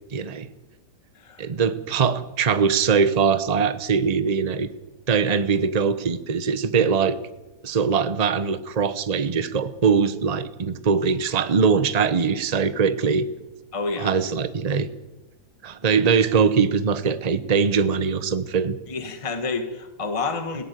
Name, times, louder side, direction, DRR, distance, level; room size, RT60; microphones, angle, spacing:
voice 1, 0.1-0.5 1.4-4.7 5.1-7.2 7.6-13.3 14.0-14.9 15.6-18.8, right 6 dB, 30° right, 12 dB, 0.9 m, -22 dB
voice 2, 1.1-1.5 13.7-14.1 18.9-20.6, left 3 dB, 20° left, 7 dB, 1.5 m, -29 dB
18.0 x 16.5 x 9.3 m, 1.1 s
omnidirectional pair, 1.7 m